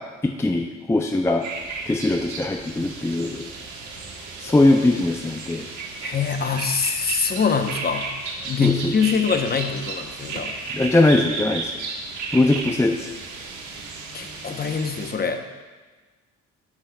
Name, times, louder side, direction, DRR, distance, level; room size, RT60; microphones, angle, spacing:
voice 1, 0.4-1.5 1.9-3.4 4.4-5.6 8.6-8.7 10.7-11.7 12.3-13.1, left 2 dB, 10° left, 3 dB, 0.4 m, -20 dB
sound 1, 1.4-15.1, right 4 dB, 75° right, 1.3 m, -34 dB
voice 2, 6.0-8.1 8.4-10.5 14.1-15.4, left 6 dB, 30° left, 6 dB, 0.8 m, -24 dB
13.5 x 6.1 x 2.2 m, 1.3 s
cardioid pair, 90°, 30 cm